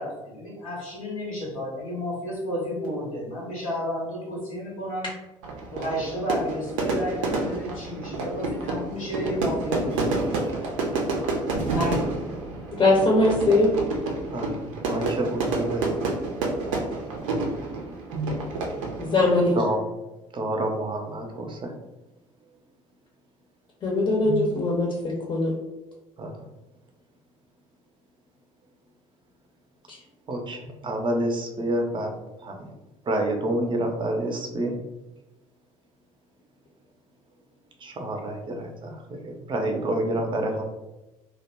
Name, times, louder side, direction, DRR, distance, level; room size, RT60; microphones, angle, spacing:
voice 1, 0.0-5.1 5.7-10.3 11.7-12.1, equal, 85° left, -6 dB, 1.0 m, -31 dB
Fire / Fireworks, 5.4-19.5, right 3 dB, 70° right, 0.5 m, -29 dB
voice 2, 12.7-13.7 19.0-19.6 23.8-25.5 29.9-30.0, left 2 dB, 30° left, -2 dB, 0.6 m, -21 dB
voice 3, 14.3-16.0 18.1-18.3 19.5-19.8 20.3-21.7 24.2-24.4 26.2-26.3 30.3-32.1 32.4-32.7 33.1-34.7 37.8-40.6, right 1 dB, 30° right, 3 dB, 0.6 m, -28 dB
2.4 x 2.0 x 3.3 m, 1.0 s
figure-of-eight pair, 55°, 17 cm